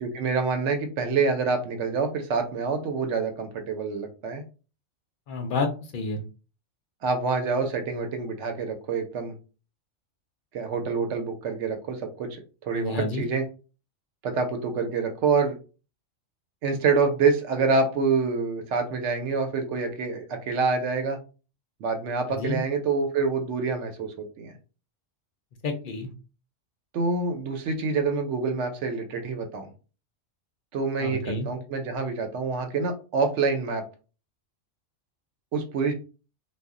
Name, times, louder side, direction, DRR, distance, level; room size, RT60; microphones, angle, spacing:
voice 1, 0.0-4.4 7.0-9.3 10.5-13.4 14.2-15.6 16.6-21.2 21.8-24.5 26.9-29.7 30.7-33.8 35.5-35.9, right 4 dB, 70° right, 6 dB, 0.8 m, -26 dB
voice 2, 5.3-6.2 12.7-13.2 22.3-22.6 25.6-26.1 31.0-31.5, left 3 dB, 60° left, 5 dB, 0.6 m, -29 dB
2.2 x 2.0 x 3.5 m, 0.34 s
omnidirectional pair, 1.3 m